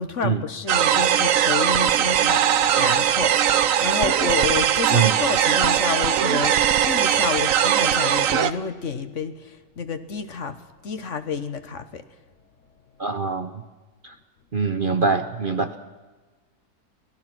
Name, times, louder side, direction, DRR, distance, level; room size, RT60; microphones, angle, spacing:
voice 1, 0.0-2.5 2.8-3.3 3.8-10.6 10.8-12.0, left 5 dB, 55° left, 10 dB, 1.4 m, -29 dB
sound 1, 0.7-8.5, right 9 dB, 65° right, 1.1 m, -20 dB
voice 2, 13.0-13.6 14.0-14.1 14.5-15.8, right 5 dB, 45° right, 9 dB, 0.8 m, -23 dB
25.0 x 17.0 x 6.1 m, 1.3 s
omnidirectional pair, 1.6 m